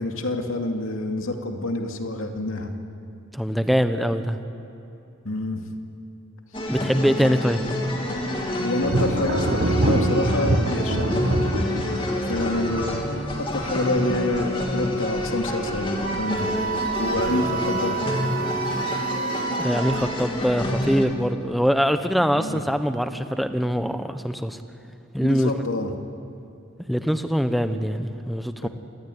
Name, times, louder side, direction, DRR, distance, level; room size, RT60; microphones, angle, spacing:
voice 1, 0.0-2.7 5.2-5.6 8.6-11.5 12.2-13.0 13.4-16.5 17.0-18.1 22.3-22.6 25.2-25.9 28.6-28.7, left 1 dB, 80° left, 4 dB, 2.4 m, -27 dB
voice 2, 3.3-4.4 6.7-7.6 19.6-24.6 25.1-25.5 26.9-28.7, equal, ahead, 8 dB, 1.0 m, -23 dB
sound 1, 6.5-21.0, left 1 dB, 25° left, 3.0 m, -28 dB
Thunder, 8.8-15.3 15.7-16.2 16.7-17.5, right 1 dB, 60° right, 1.4 m, -26 dB
Wind instrument woodwind instrument, 16.0-20.2, right 6 dB, 40° right, 0.8 m, -30 dB
27.0 x 20.0 x 9.5 m, 2.8 s
head